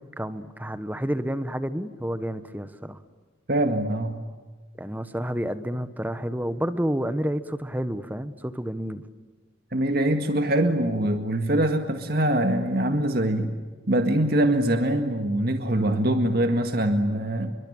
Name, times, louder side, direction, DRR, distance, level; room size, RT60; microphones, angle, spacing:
voice 1, 0.2-3.0 4.8-9.0 15.7-16.1, equal, 10° right, 11 dB, 1.3 m, -30 dB
voice 2, 3.5-4.2 9.7-13.5 13.9-17.6, right 1 dB, 50° right, 6 dB, 1.9 m, -23 dB
29.0 x 23.5 x 8.9 m, 1.4 s
head